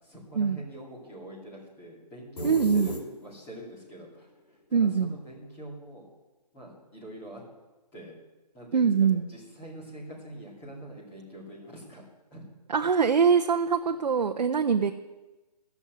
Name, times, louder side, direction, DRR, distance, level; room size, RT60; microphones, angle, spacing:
voice 1, 0.0-6.1 6.5-7.4 7.9-8.2 8.5-12.4, right 1 dB, 10° left, -6 dB, 2.3 m, -44 dB
sound 1, 2.4-3.6, left 1 dB, 75° left, 3.5 m, -35 dB
voice 2, 2.4-2.9 4.7-5.1 8.7-9.3 12.7-14.9, right 6 dB, 70° right, 6 dB, 0.8 m, -23 dB
12.5 x 7.1 x 9.3 m, 1.1 s
hypercardioid pair, 175°, 21 cm